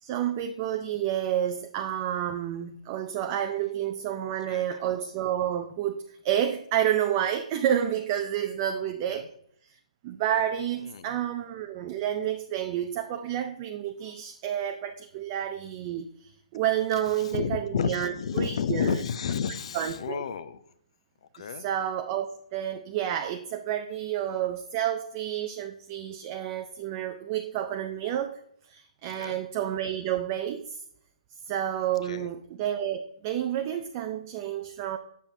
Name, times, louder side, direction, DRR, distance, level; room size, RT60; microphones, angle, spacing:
voice 1, 0.0-9.3 9.6-9.8 10.0-18.9 19.7-20.2 21.6-28.4 28.7-30.8 31.5-35.0, right 10 dB, 25° right, 6 dB, 0.4 m, -30 dB
voice 2, 4.2-4.8 8.8-9.3 10.9-11.2 17.1-20.6 21.3-21.7 29.1-29.4 32.0-32.4, left 7 dB, 50° left, 13 dB, 0.6 m, -32 dB
7.4 x 6.8 x 2.7 m, 0.70 s
hypercardioid pair, 155°, 4 cm